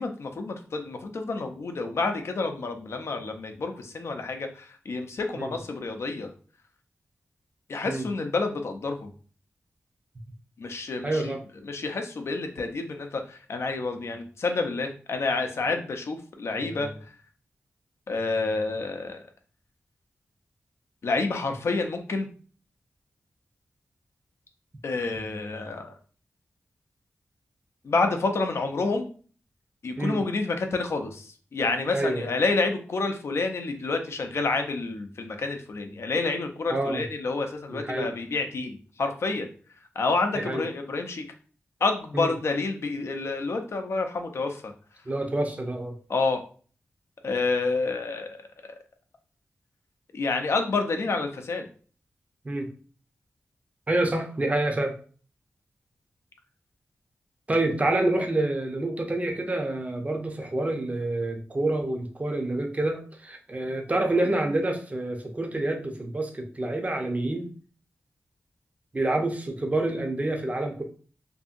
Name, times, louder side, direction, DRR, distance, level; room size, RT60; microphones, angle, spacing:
voice 1, 0.0-6.3 7.7-9.1 10.6-11.4 11.6-16.9 18.1-19.2 21.0-22.3 24.8-25.9 27.8-29.1 29.8-39.5 40.0-41.2 41.8-44.7 46.1-46.4 47.2-48.4 50.1-51.7, left 3 dB, 70° left, 5 dB, 0.5 m, -29 dB
voice 2, 11.0-11.4 16.5-16.9 30.0-30.2 31.9-32.3 36.7-37.0 37.7-38.1 40.3-40.6 42.1-42.3 45.1-45.9 52.4-52.7 53.9-54.9 57.5-67.5 68.9-70.8, right 2 dB, 30° right, 4 dB, 0.6 m, -27 dB
2.6 x 2.6 x 2.5 m, 0.41 s
cardioid pair, 50°, 5 cm